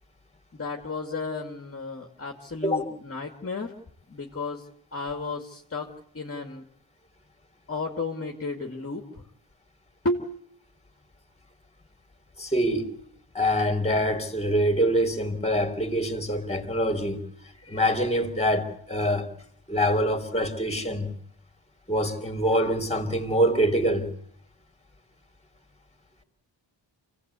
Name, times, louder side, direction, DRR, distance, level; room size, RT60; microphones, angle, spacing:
voice 1, 0.5-3.7 4.1-6.7 7.7-9.2 10.0-10.3, left 3 dB, 30° left, 2.3 m, -33 dB
voice 2, 12.4-12.9 13.3-17.2 17.7-19.3 19.7-21.2 21.9-24.1, equal, 15° left, 3.3 m, -25 dB
28.5 x 17.5 x 8.3 m
wide cardioid pair, 160°, 45 cm